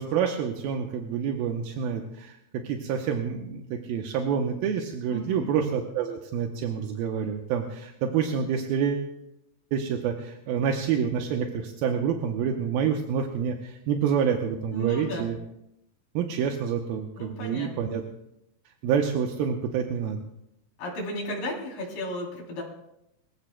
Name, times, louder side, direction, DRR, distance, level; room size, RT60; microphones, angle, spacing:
voice 1, 0.0-2.4 2.6-9.1 9.7-15.4 16.1-18.0 18.8-20.2, right 7 dB, 80° right, 3 dB, 2.7 m, -28 dB
voice 2, 5.1-5.5 14.7-15.3 17.2-17.9 20.8-22.6, right 1 dB, 60° left, -3 dB, 4.9 m, -34 dB
24.0 x 15.0 x 2.2 m, 0.83 s
omnidirectional pair, 4.3 m